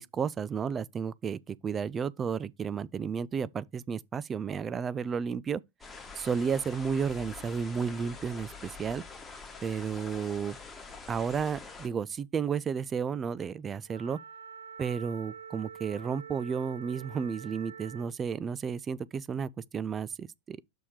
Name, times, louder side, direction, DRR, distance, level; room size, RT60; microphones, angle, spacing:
voice 1, 0.0-5.6 6.2-9.0 9.6-10.6 11.1-14.2 14.8-20.6, right 6 dB, 20° right, 0.4 m, -32 dB
sound 1, 5.8-11.9, left 4 dB, 15° left, 1.2 m, -46 dB
Wind instrument woodwind instrument, 13.9-18.2, right 7 dB, 70° right, 0.7 m, -46 dB
6.3 x 4.2 x 4.9 m
figure-of-eight pair, 90°, 0 cm